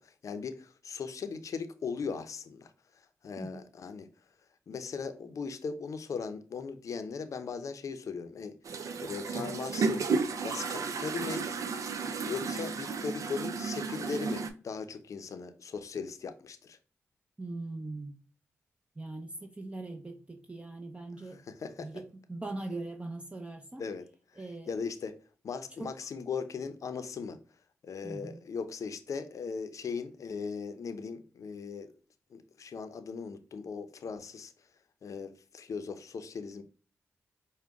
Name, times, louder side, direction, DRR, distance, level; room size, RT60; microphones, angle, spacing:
voice 1, 0.0-4.1 4.7-8.5 9.0-10.0 10.4-11.5 12.2-16.8 21.3-21.9 23.8-24.1 24.3-25.2 25.4-27.4 27.8-31.9 32.3-34.7 35.0-36.6, left 5 dB, 70° left, 0.6 m, -38 dB
sound 1, 8.6-14.5, right 4 dB, 75° right, 0.5 m, -33 dB
voice 2, 17.4-18.2 19.0-21.4 21.8-23.8 24.4-24.7 25.8-25.9 28.0-28.4, right 2 dB, 20° right, 0.6 m, -41 dB
5.0 x 2.2 x 3.5 m
cardioid pair, 50°, 6 cm